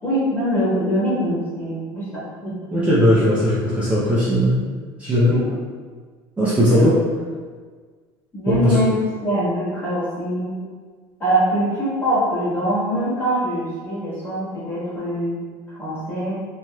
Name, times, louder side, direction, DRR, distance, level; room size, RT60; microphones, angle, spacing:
voice 1, 0.0-2.5 5.3-5.6 6.7-6.9 8.3-8.9 9.2-10.6 11.2-15.4 15.7-16.4, equal, 20° left, -10 dB, 1.4 m, -23 dB
voice 2, 2.7-4.6 5.0-5.3 6.4-7.0 8.5-8.8, equal, 10° right, -10 dB, 0.5 m, -17 dB
3.0 x 2.9 x 2.3 m, 1.5 s
cardioid pair, 145°, 11 cm